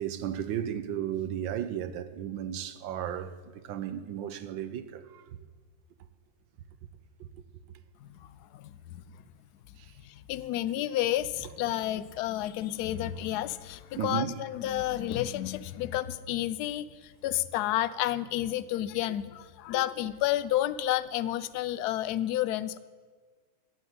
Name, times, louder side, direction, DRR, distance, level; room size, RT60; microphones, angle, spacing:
voice 1, 0.0-5.2 7.2-7.3 9.8-9.9 14.0-14.4, right 9 dB, 80° right, 1.6 m, -34 dB
voice 2, 10.0-22.8, left 13 dB, 70° left, 1.0 m, -30 dB
14.5 x 8.7 x 9.4 m
omnidirectional pair, 2.1 m